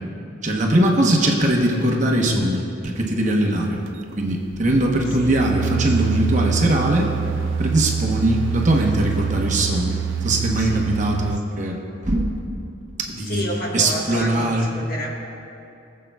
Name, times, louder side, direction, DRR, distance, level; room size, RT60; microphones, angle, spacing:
voice 1, 0.4-3.8 4.2-7.1 7.6-12.3 13.0-13.4 13.7-14.7, right 1 dB, 40° right, 0 dB, 1.0 m, -21 dB
sound 1, 3.9-4.1 4.5-11.4, right 7 dB, 85° right, 0.3 m, -26 dB
voice 2, 10.5-10.9 13.3-15.2, equal, 50° left, -2 dB, 1.3 m, -30 dB
22.0 x 7.5 x 2.3 m, 2.7 s
head